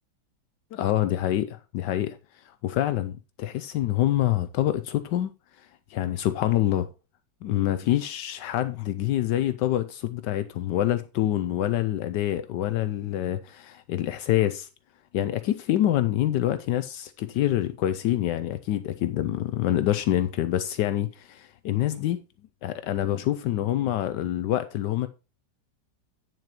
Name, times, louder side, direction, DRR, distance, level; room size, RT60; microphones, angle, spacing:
voice 1, 0.7-5.3 5.6-6.9 7.4-14.7 15.1-22.2 22.6-25.1, left 13 dB, 80° left, 1.2 m, -26 dB
9.0 x 7.8 x 2.9 m
omnidirectional pair, 1.9 m